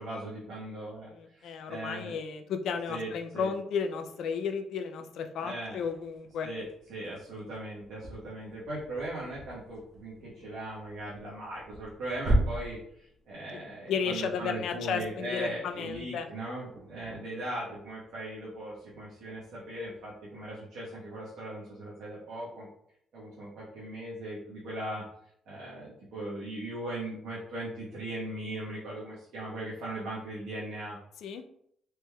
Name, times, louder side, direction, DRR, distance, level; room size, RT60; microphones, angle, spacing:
voice 1, 0.0-2.2 2.9-3.5 5.4-5.8 6.4-22.7 23.1-25.0 25.5-31.0, right 1 dB, 75° right, -7 dB, 1.0 m, -39 dB
voice 2, 1.1-6.5 13.9-16.3 31.2-31.4, left 6 dB, 75° left, 7 dB, 0.3 m, -33 dB
sound 1, 5.6-20.5, right 1 dB, 55° right, 0.7 m, -39 dB
3.4 x 2.9 x 2.2 m, 0.69 s
cardioid pair, 90°, 0 cm